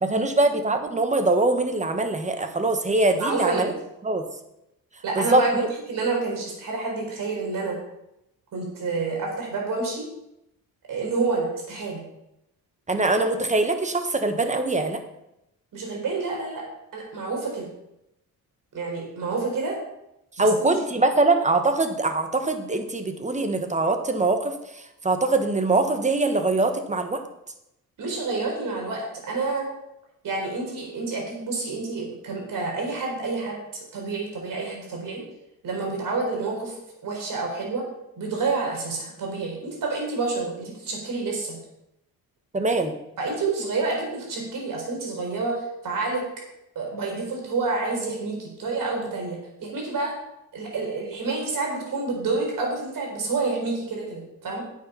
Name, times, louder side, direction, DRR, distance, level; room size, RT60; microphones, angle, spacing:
voice 1, 0.0-3.7 4.0-4.2 5.1-5.4 12.9-15.0 20.4-27.2 42.5-42.9, right 2 dB, 20° right, 7 dB, 1.4 m, -23 dB
voice 2, 3.2-3.7 5.0-7.8 8.5-10.1 10.9-12.0 15.7-16.6 16.9-17.7 18.7-19.8 20.4-20.7 28.0-29.7 30.2-33.6 33.9-35.2 35.6-36.7 37.0-37.8 38.2-41.6 43.2-46.2 46.7-50.2 50.5-54.6, right 3 dB, 65° right, 0 dB, 4.5 m, -28 dB
9.3 x 7.6 x 5.8 m, 0.85 s
cardioid pair, 95°, 35 cm